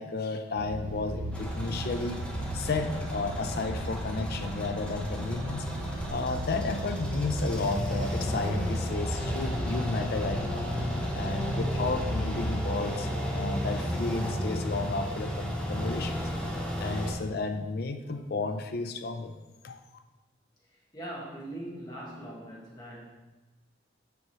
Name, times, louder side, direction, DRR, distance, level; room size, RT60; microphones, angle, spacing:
voice 1, 0.0-2.2 2.5-5.7 6.1-10.6 11.1-16.3 16.8-19.3 19.6-19.8, left 3 dB, 50° left, 7 dB, 0.4 m, -33 dB
sound 1, 0.6-12.5, right 1 dB, 65° right, 0.6 m, -38 dB
sound 2, 1.3-17.1, equal, 5° left, 0.8 m, -33 dB
voice 2, 20.9-23.1, right 1 dB, 20° left, -5 dB, 1.3 m, -41 dB
6.9 x 4.8 x 3.1 m, 1.2 s
head